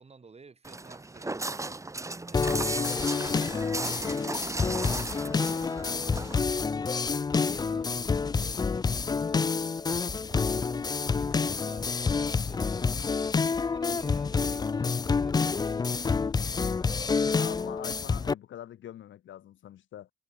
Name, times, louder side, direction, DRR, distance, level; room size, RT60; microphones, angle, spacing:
voice 1, 0.0-9.6 9.9-16.3, right 4 dB, 30° right, 6.1 m, -53 dB
Walk footsteps, 0.6-6.4, right 2 dB, 15° right, 1.8 m, -36 dB
sound 1, 2.3-18.3, left 5 dB, 20° left, 0.4 m, -28 dB
voice 2, 17.4-20.1, left 11 dB, 70° left, 6.5 m, -44 dB
cardioid pair, 90°, 20 cm